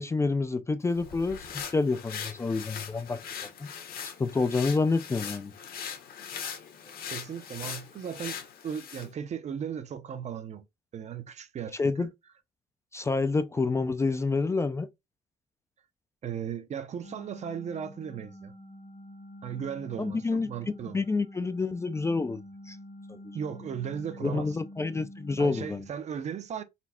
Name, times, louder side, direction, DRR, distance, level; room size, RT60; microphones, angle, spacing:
voice 1, 0.0-3.2 3.6-3.7 4.2-5.5 11.8-12.1 12.9-14.9 20.0-20.5 20.9-22.4 22.7-22.8 23.1-23.4 24.2-25.8, left 3 dB, 15° left, 0.4 m, -28 dB
sound 1, 0.9-9.1, left 7 dB, 60° left, 1.2 m, -40 dB
voice 2, 7.1-8.4 8.6-10.6 10.9-12.1 16.2-18.5 19.4-21.0 23.3-24.6 25.4-26.6, right 8 dB, 40° right, 0.6 m, -36 dB
sound 2, 17.0-25.9, left 1 dB, 45° left, 0.9 m, -47 dB
4.2 x 2.3 x 4.2 m
cardioid pair, 110°, 17 cm